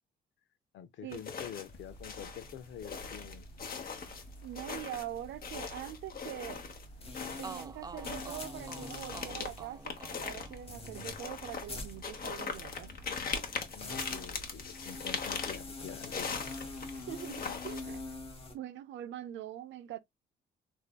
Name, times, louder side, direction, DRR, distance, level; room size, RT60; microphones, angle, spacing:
voice 1, 0.7-3.5 13.7-16.3, left 10 dB, 70° left, 0.6 m, -47 dB
sound 1, 1.1-1.8 2.0-6.9 7.1-18.1, left 5 dB, 50° left, 1.0 m, -40 dB
sound 2, 1.7-18.5, left 2 dB, 30° left, 1.1 m, -46 dB
voice 2, 4.4-6.6 7.4-13.0 16.9-18.1 18.5-20.0, right 11 dB, 70° right, 0.5 m, -43 dB
sound 3, 7.0-7.1 7.4-15.3 15.5-16.7, right 5 dB, 20° right, 0.3 m, -51 dB
3.3 x 2.7 x 2.3 m
cardioid pair, 90°, 20 cm